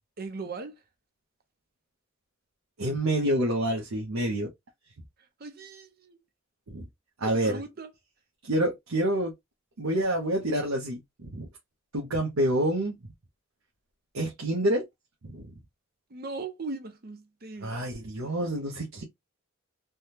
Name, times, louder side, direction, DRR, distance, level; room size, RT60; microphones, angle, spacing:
voice 1, 0.2-0.8 5.2-6.2 7.2-7.9 16.1-17.7 18.9-19.0, right 3 dB, 45° right, 0.7 m, -39 dB
voice 2, 2.8-4.5 6.7-6.9 7.2-7.6 8.4-9.3 9.8-11.5 11.9-12.9 14.1-14.9 15.2-15.5 17.6-19.0, right 1 dB, 85° right, 0.8 m, -27 dB
3.4 x 2.2 x 2.7 m
head